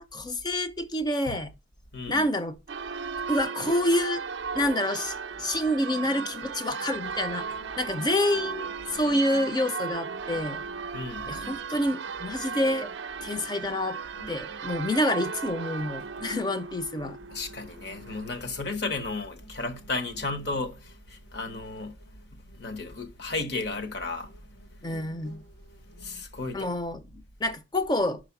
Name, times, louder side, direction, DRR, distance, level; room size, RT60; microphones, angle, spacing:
voice 1, 0.0-1.5 2.1-2.6 3.3-4.2 4.5-7.5 7.8-10.6 11.3-12.9 13.2-14.0 14.3-17.2 24.8-25.4 26.5-28.2, left 1 dB, 20° left, 0.5 m, -28 dB
Church bell, 2.7-18.4, right 5 dB, 65° right, 0.4 m, -36 dB
sound 1, 7.0-26.2, right 1 dB, 90° left, 3.3 m, -53 dB
voice 2, 10.9-11.4 17.3-21.9 22.6-24.3 26.0-26.8, left 3 dB, 55° left, 1.1 m, -34 dB
5.9 x 4.9 x 5.8 m
head